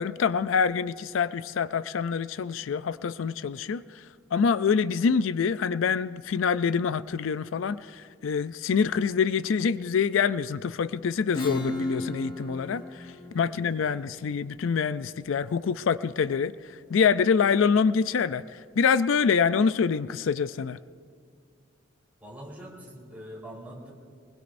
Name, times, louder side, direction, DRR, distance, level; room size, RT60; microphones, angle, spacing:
voice 1, 0.0-3.8 4.3-16.5 16.9-20.8, left 6 dB, 85° left, 15 dB, 0.4 m, -26 dB
Acoustic guitar / Strum, 11.3-16.7, left 2 dB, 25° left, 1.3 m, -36 dB
voice 2, 13.3-14.0 22.2-23.9, equal, 10° right, -5 dB, 4.0 m, -44 dB
24.0 x 20.5 x 2.6 m, 2.2 s
head